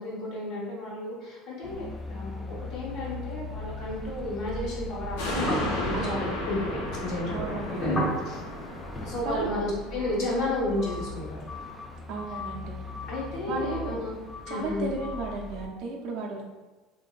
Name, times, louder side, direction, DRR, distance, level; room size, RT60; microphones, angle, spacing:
voice 1, 0.0-8.4 9.0-11.4 13.1-14.1 14.5-14.9, left 2 dB, 60° left, -5 dB, 1.2 m, -33 dB
sound 1, 1.6-15.7, left 3 dB, 15° left, 0.4 m, -40 dB
sound 2, 3.5-10.1, right 1 dB, 30° left, 1.0 m, -34 dB
sound 3, 5.2-11.8 12.3-12.4, left 2 dB, 90° left, 0.6 m, -36 dB
voice 2, 5.9-6.3 7.3-7.8 9.2-9.6 12.1-12.7 13.5-14.1 14.5-16.4, right 3 dB, 65° right, -1 dB, 0.6 m, -34 dB
3.0 x 2.6 x 2.4 m, 1.2 s
supercardioid pair, 100°, 0 cm